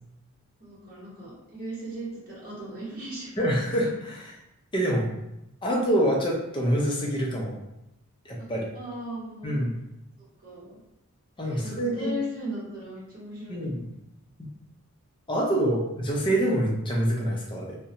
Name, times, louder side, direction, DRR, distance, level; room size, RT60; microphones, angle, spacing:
voice 1, 0.6-3.4 8.4-8.5 8.7-9.6 10.2-10.8 11.4-13.9, equal, 40° right, -9 dB, 1.1 m, -37 dB
voice 2, 3.4-4.4 4.7-5.1 5.6-7.6 8.3-8.7 9.4-9.7 11.4-12.1 13.5-13.8 15.3-17.8, right 1 dB, 20° left, -2 dB, 0.4 m, -26 dB
2.5 x 2.1 x 2.8 m, 0.89 s
head